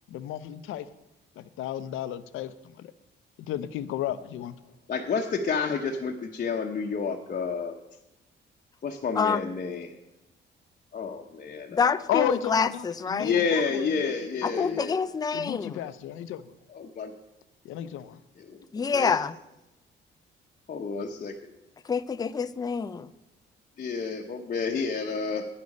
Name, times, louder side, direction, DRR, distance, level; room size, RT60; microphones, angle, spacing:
voice 1, 0.1-0.9 1.4-2.9 3.4-4.5 12.1-14.8 15.3-16.5 17.6-18.2, left 11 dB, 85° left, 0.6 m, -33 dB
voice 2, 4.9-7.8 8.8-9.9 10.9-11.9 13.2-15.0 16.7-17.1 18.4-18.5 18.9-19.1 20.7-21.3 23.8-25.5, left 5 dB, 45° left, 0.9 m, -30 dB
voice 3, 11.8-13.4 14.4-15.8 18.7-19.3 21.9-23.1, left 5 dB, 20° left, 0.4 m, -27 dB
9.5 x 9.5 x 5.4 m
cardioid pair, 90°, 20 cm